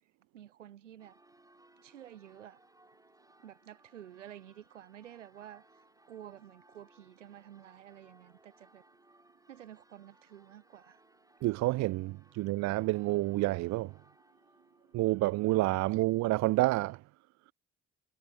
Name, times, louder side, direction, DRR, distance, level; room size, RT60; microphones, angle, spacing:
voice 1, 0.3-1.2 1.8-2.6 3.4-5.6 6.1-8.8 9.5-11.0, right 11 dB, 85° right, 1.9 m, -51 dB
Church bell, 1.0-16.7, right 1 dB, 10° right, 7.4 m, -65 dB
voice 2, 11.4-13.9 14.9-17.0, right 19 dB, 50° right, 0.5 m, -29 dB
figure-of-eight pair, 50°, 36 cm